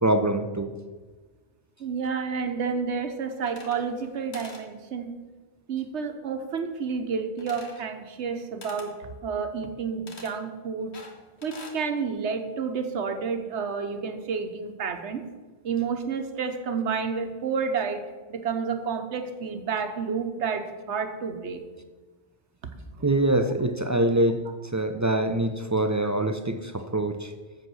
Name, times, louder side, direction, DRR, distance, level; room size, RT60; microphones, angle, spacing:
voice 1, 0.0-0.7 23.0-24.4 24.7-27.3, right 1 dB, 30° right, 7 dB, 0.3 m, -24 dB
voice 2, 1.8-5.1 5.7-10.9 11.4-15.2 15.6-18.0 18.3-21.6, right 5 dB, 85° right, 7 dB, 1.2 m, -30 dB
sound 1, 3.4-4.1 4.3-4.7 7.4-7.9 8.6-8.9 10.1-10.4 10.9-11.8, left 3 dB, 75° left, 1.6 m, -45 dB
7.9 x 7.4 x 6.3 m, 1.3 s
omnidirectional pair, 1.1 m